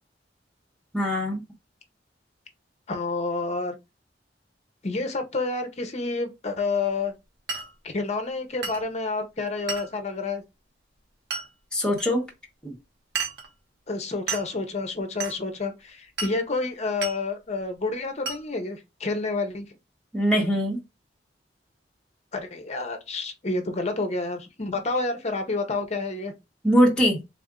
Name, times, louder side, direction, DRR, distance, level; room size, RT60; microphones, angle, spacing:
voice 1, 0.9-1.4 11.7-12.2 12.6-12.7 20.1-20.8 26.6-27.2, equal, 5° left, 1.1 m, -22 dB
voice 2, 2.9-3.8 4.8-7.1 7.8-10.4 13.9-19.7 22.3-26.3, left 3 dB, 40° left, 0.8 m, -29 dB
Glass, 7.5-7.7 8.6-8.9 9.7-9.9 11.3-11.5 12.0-12.1 13.2-13.5 14.3-14.5 15.2-15.4 16.2-16.4 17.0-17.2 18.3-18.4, right 5 dB, 75° right, 0.8 m, -31 dB
3.6 x 2.6 x 3.6 m
head